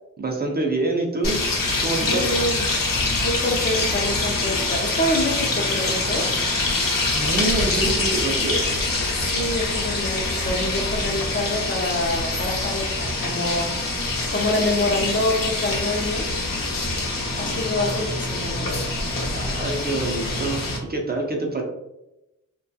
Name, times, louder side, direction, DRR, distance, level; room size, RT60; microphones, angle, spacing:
voice 1, 0.2-1.4 1.8-2.3 7.1-8.6 19.3-21.6, right 2 dB, 30° right, 0 dB, 0.4 m, -26 dB
sound 1, 1.2-20.8, left 2 dB, 85° left, 0.8 m, -25 dB
voice 2, 2.0-2.7 3.2-6.3 9.1-16.3 17.3-18.7, left 1 dB, 35° left, 1 dB, 0.5 m, -26 dB
2.8 x 2.2 x 2.7 m, 0.91 s
wide cardioid pair, 135°, 33 cm